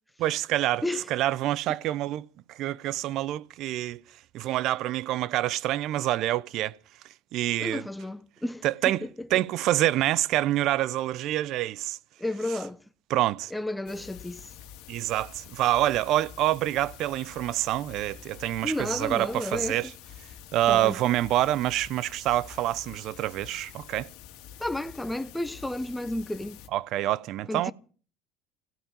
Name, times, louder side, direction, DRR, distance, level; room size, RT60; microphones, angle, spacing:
voice 1, 0.2-4.0 4.3-6.7 7.3-7.8 8.6-9.0 9.3-12.0 13.1-13.5 14.9-19.9 20.5-24.1 26.7-27.7, right 14 dB, 65° right, 0.6 m, -27 dB
voice 2, 7.6-8.6 9.0-9.3 12.2-12.8 13.5-14.5 18.6-19.8 20.7-21.0 24.6-26.6 27.5-27.7, left 1 dB, 5° left, 1.0 m, -32 dB
sound 1, 13.9-26.7, left 10 dB, 70° left, 1.9 m, -47 dB
16.0 x 8.9 x 8.9 m
hypercardioid pair, 75°, 0 cm